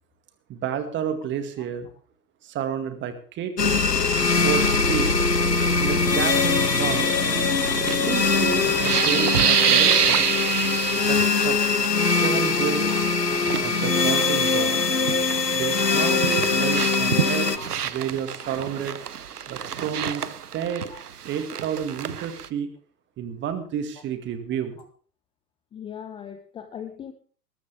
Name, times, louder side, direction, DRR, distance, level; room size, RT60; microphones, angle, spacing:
voice 1, 0.5-1.9 2.4-3.9 4.4-5.1 5.8-7.2 7.9-10.3 11.1-11.6 12.2-12.9 13.6-14.8 15.5-17.5 17.8-19.0 19.5-20.2 20.5-20.8 21.2-22.7 23.2-24.8, right 8 dB, 25° right, 9 dB, 2.1 m, -30 dB
sound 1, 3.6-17.6, left 4 dB, 85° left, 1.4 m, -22 dB
sound 2, 7.9-11.9 12.1-12.4 12.8-15.4 15.7-22.5, right 8 dB, 70° right, 1.1 m, -27 dB
voice 2, 25.7-27.1, left 8 dB, 10° left, 8 dB, 0.8 m, -40 dB
20.5 x 13.0 x 3.5 m, 0.43 s
figure-of-eight pair, 110°, 48 cm